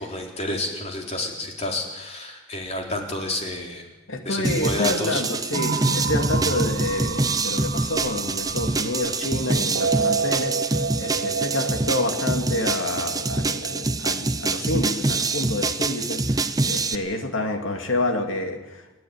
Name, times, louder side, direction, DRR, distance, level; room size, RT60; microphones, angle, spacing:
voice 1, 0.0-3.9 4.2-5.2 11.1-11.3 16.8-16.9, left 2 dB, 30° left, 1 dB, 3.8 m, -30 dB
voice 2, 4.1-18.9, left 1 dB, 70° left, 4 dB, 2.7 m, -28 dB
sound 1, 4.4-17.0, right 3 dB, 20° right, 0.8 m, -25 dB
sound 2, 5.5-9.2 9.6-13.9, right 4 dB, 50° right, 0.9 m, -30 dB
29.0 x 9.8 x 9.7 m, 1.1 s
head